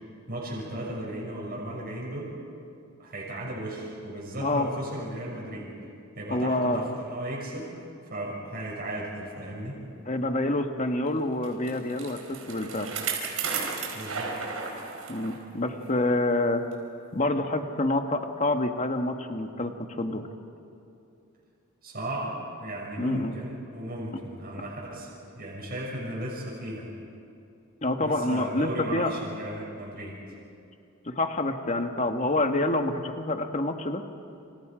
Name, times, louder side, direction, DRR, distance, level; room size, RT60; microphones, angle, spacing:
voice 1, 0.3-2.3 3.0-5.7 6.1-7.8 8.1-9.8 13.9-14.4 21.8-25.1 25.4-26.9 28.0-30.2, right 1 dB, 45° right, -4 dB, 6.3 m, -35 dB
voice 2, 6.3-6.9 10.1-12.9 15.1-16.6 17.1-20.3 23.0-23.3 27.8-29.1 31.0-34.0, left 2 dB, 35° left, 5 dB, 1.5 m, -27 dB
Bicycle, 11.4-15.4 15.8-15.9 16.7-16.8, right 5 dB, 85° right, 4.6 m, -34 dB
29.0 x 27.5 x 5.1 m, 2.6 s
head